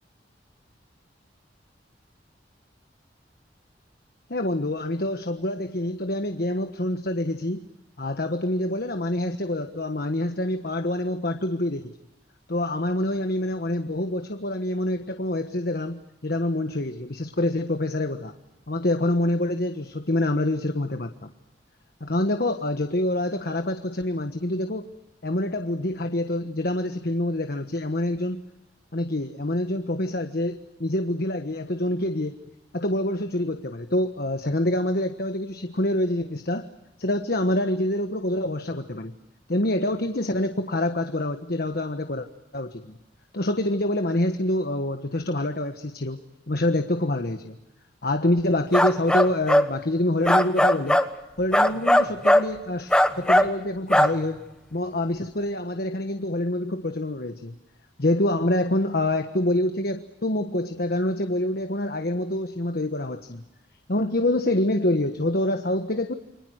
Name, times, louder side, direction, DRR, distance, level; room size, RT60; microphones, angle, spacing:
voice 1, 4.3-7.7 8.0-11.9 12.5-18.3 18.7-21.3 22.0-24.9 25.2-28.4 28.9-36.7 37.0-39.1 39.5-42.3 42.5-43.0 43.3-46.2 46.5-47.6 48.0-51.0 51.4-54.4 54.7-57.5 58.0-63.4 63.9-66.1, left 1 dB, 60° left, 7 dB, 1.4 m, -26 dB
sound 1, 48.7-49.7 50.2-51.1 51.5-52.5 52.9-53.5 53.9-54.1, left 1 dB, 5° left, 1.2 m, -18 dB
29.0 x 24.5 x 6.4 m, 0.96 s
head